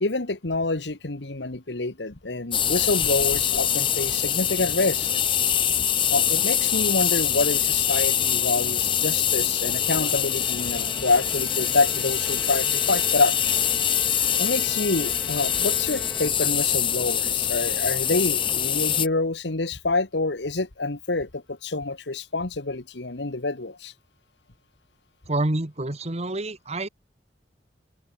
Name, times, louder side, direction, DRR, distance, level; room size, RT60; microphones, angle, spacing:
voice 1, 0.0-5.1 6.1-13.6 14.4-23.9, left 3 dB, 80° left, 1.6 m, -27 dB
sound 1, 2.5-19.1, left 9 dB, 30° left, 0.7 m, -24 dB
Bowed string instrument, 9.8-16.8, left 1 dB, 10° left, 5.3 m, -44 dB
voice 2, 25.3-26.9, right 2 dB, 40° right, 1.7 m, -27 dB
head